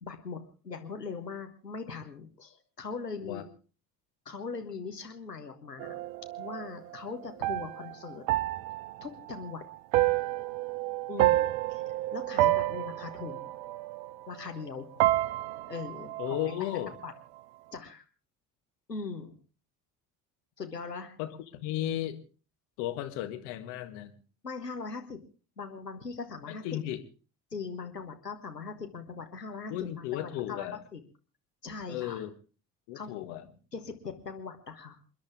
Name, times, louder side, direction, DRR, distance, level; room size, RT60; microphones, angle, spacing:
voice 1, 0.0-0.4 0.6-3.5 4.3-6.0 6.4-8.2 9.0-9.7 11.1-11.8 12.1-13.5 14.3-15.1 15.7-16.7 17.0-17.1 17.7-18.0 18.9-19.3 20.6-21.2 24.4-25.2 25.6-26.8 27.5-31.0 31.6-32.2 32.9-33.1 33.7-35.0, left 5 dB, 85° left, 5 dB, 1.6 m, -40 dB
sound 1, 5.8-14.7 15.0-17.0, right 16 dB, 55° right, 0.8 m, -30 dB
voice 2, 16.2-16.9 21.2-22.2 22.8-24.1 26.5-27.0 29.7-30.8 31.9-32.3 32.9-33.5, left 13 dB, 55° left, 9 dB, 1.8 m, -34 dB
28.0 x 10.5 x 3.6 m, 0.37 s
figure-of-eight pair, 60°, 47 cm